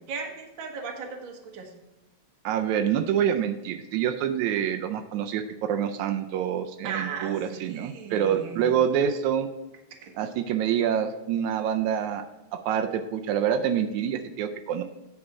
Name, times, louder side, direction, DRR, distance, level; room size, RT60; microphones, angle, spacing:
voice 1, 0.0-1.7 6.8-8.7 10.0-10.1, right 5 dB, 55° right, 2 dB, 1.6 m, -37 dB
voice 2, 2.4-9.5 10.2-12.3 12.5-14.8, right 9 dB, 85° right, 6 dB, 2.0 m, -26 dB
8.7 x 5.0 x 4.6 m, 1.1 s
omnidirectional pair, 3.3 m